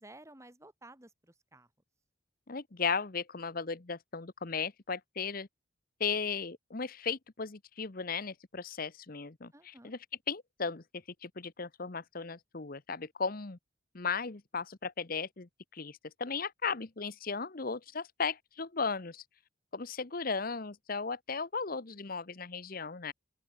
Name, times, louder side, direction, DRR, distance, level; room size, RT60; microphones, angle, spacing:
voice 1, 0.0-1.7 9.5-9.9, right 1 dB, 15° right, 3.1 m, -54 dB
voice 2, 2.5-5.5 6.0-10.0 10.3-10.8 11.2-13.6 13.9-19.2 19.7-23.1, left 5 dB, 45° left, 1.0 m, -36 dB
open air
head